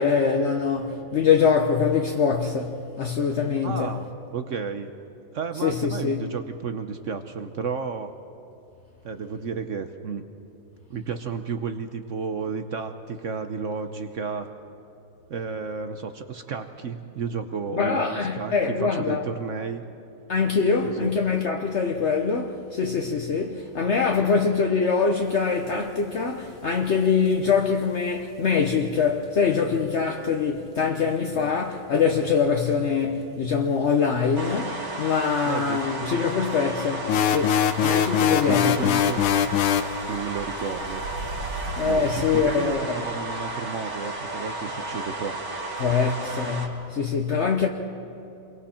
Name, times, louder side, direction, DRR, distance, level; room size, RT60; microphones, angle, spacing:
voice 1, 0.0-3.9 5.6-6.3 17.7-19.3 20.3-39.0 41.8-42.9 45.8-47.7, left 5 dB, 50° left, 0.8 m, -24 dB
voice 2, 3.6-4.1 4.3-4.9 5.3-8.1 9.0-10.2 10.9-14.5 15.3-18.5 18.8-19.8 20.8-21.1 24.2-24.3 31.4-31.6 35.4-35.8 38.3-39.2 40.1-41.0 41.8-45.4, right 5 dB, 70° right, 0.7 m, -32 dB
sound 1, 25.1-30.4 30.7-31.7 32.0-32.1 32.4-32.5 32.7-32.8 33.1-33.3 33.6-33.7 34.4-34.5 35.4-35.7 36.3-36.4 36.8-37.1 37.4-42.7, right 2 dB, 50° right, 1.8 m, -42 dB
sound 2, 34.3-46.7, right 2 dB, 30° right, 2.3 m, -33 dB
sound 3, 37.1-39.9, left 9 dB, 85° left, 1.7 m, -22 dB
29.0 x 23.0 x 4.4 m
omnidirectional pair, 2.3 m